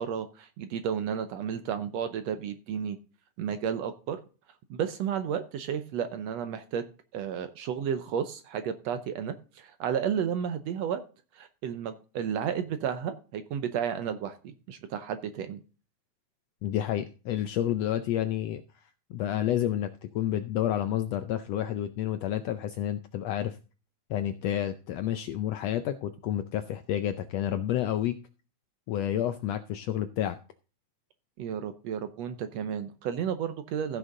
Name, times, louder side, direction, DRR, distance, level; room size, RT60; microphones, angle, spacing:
voice 1, 0.0-3.0 3.4-4.2 4.7-6.8 7.1-11.0 11.4-15.6 31.4-34.0, right 8 dB, 70° right, 10 dB, 1.7 m, -32 dB
voice 2, 16.6-18.6 19.1-23.6 24.1-28.1 28.9-30.4, left 11 dB, 80° left, 10 dB, 1.5 m, -30 dB
15.0 x 6.3 x 3.8 m, 0.35 s
omnidirectional pair, 3.6 m